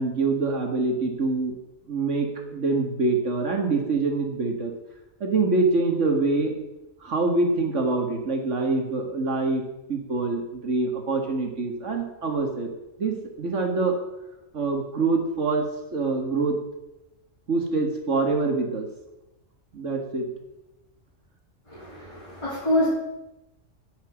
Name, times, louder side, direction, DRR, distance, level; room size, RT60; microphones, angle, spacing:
voice 1, 0.0-1.5 1.9-4.7 5.2-6.5 7.0-9.6 9.9-12.7 13.0-14.0 14.5-16.6 17.5-18.9 19.7-20.3, right 3 dB, 70° right, 3 dB, 2.1 m, -25 dB
voice 2, 21.7-22.9, left 1 dB, 25° left, -8 dB, 3.4 m, -26 dB
11.0 x 5.9 x 7.4 m, 0.96 s
omnidirectional pair, 1.3 m